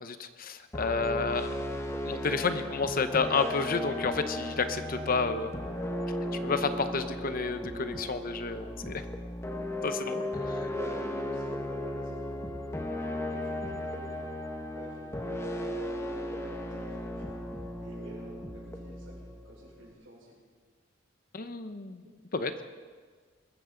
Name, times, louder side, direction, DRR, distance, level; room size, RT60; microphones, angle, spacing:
voice 1, 0.0-1.6 2.0-5.5 6.4-9.0 9.8-10.3 21.3-22.0 22.3-22.5, left 4 dB, 45° left, 10 dB, 0.8 m, -30 dB
sound 1, 0.7-19.9, left 1 dB, 15° left, 1.2 m, -36 dB
voice 2, 4.9-5.3 10.4-12.3 13.2-14.3 14.7-15.9 16.4-17.3 17.8-20.3, right 1 dB, 85° right, -9 dB, 4.8 m, -49 dB
21.5 x 14.0 x 3.9 m, 1.5 s
head